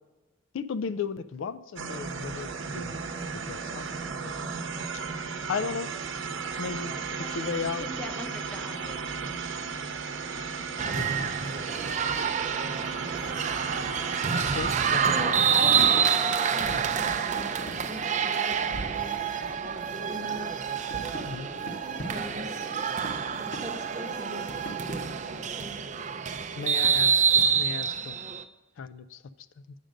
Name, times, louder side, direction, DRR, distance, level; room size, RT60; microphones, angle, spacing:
voice 1, 0.5-3.0 3.5-3.8 4.2-4.3 5.5-5.9 6.6-7.9 10.9-11.3 14.5-15.4 16.7-16.8 21.3-21.5 26.6-28.1 28.8-29.2 29.6-29.7, left 5 dB, 75° left, 13 dB, 0.4 m, -35 dB
sound 1, 1.8-15.2, right 5 dB, 70° right, 0.8 m, -35 dB
voice 2, 7.2-9.2, left 1 dB, 5° left, 4 dB, 0.7 m, -43 dB
sound 2, 10.8-28.4, right 7 dB, 40° right, 0.4 m, -27 dB
voice 3, 15.1-15.8 16.2-19.1 20.1-20.5 21.8-22.7 23.4-24.5 25.6-25.8, equal, 20° right, 2 dB, 1.0 m, -42 dB
sound 3, 15.3-25.4, equal, 55° left, 1.4 m, -41 dB
9.0 x 5.1 x 6.3 m, 1.2 s
head